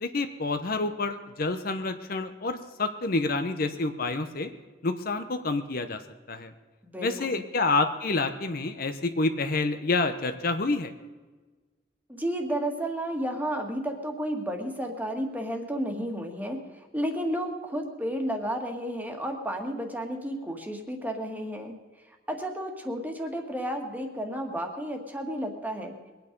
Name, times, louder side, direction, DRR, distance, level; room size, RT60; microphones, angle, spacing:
voice 1, 0.0-4.5 4.8-6.0 6.3-6.5 7.0-10.9, left 3 dB, 55° left, 8 dB, 0.9 m, -28 dB
voice 2, 6.8-7.4 12.1-21.7 22.3-26.0, equal, 10° right, 3 dB, 1.8 m, -32 dB
22.0 x 9.3 x 5.3 m, 1.3 s
head